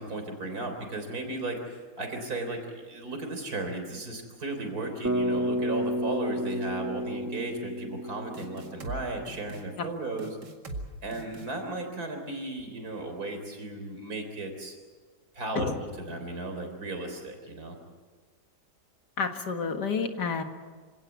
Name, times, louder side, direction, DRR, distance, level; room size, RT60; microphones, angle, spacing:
voice 1, 0.0-10.4 11.0-14.8 15.3-17.8, right 2 dB, 60° right, 5 dB, 4.2 m, -35 dB
Bass guitar, 5.0-9.2, equal, 10° right, 1.1 m, -31 dB
sound 1, 8.3-9.0 9.3-9.6 10.2-10.8 11.1-11.5, right 2 dB, 85° right, 2.8 m, -39 dB
voice 2, 19.2-20.4, left 5 dB, 75° left, 6 dB, 2.3 m, -29 dB
26.5 x 17.5 x 8.3 m, 1.5 s
omnidirectional pair, 1.8 m